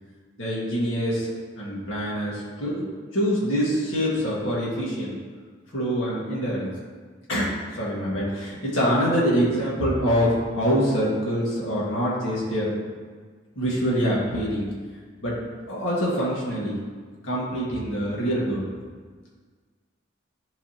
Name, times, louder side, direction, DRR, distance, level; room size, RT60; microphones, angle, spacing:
voice 1, 0.4-1.3 1.6-2.8 3.1-5.2 5.7-6.7 7.3-12.7 13.6-14.7 15.2-15.4 15.7-16.8 17.2-18.7, equal, 90° left, -5 dB, 1.8 m, -25 dB
10.5 x 4.1 x 2.9 m, 1.5 s
head